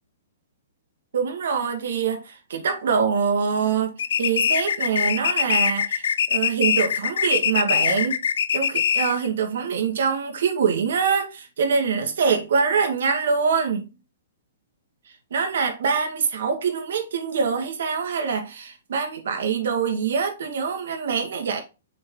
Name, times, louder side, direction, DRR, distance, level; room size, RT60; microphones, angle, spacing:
voice 1, 1.1-8.2 8.5-13.9 15.3-21.6, right 6 dB, 70° right, 1.8 m, -24 dB
sound 1, 4.0-9.3, left 8 dB, 70° left, 0.4 m, -23 dB
6.7 x 3.8 x 3.8 m
hypercardioid pair, 165°, 0 cm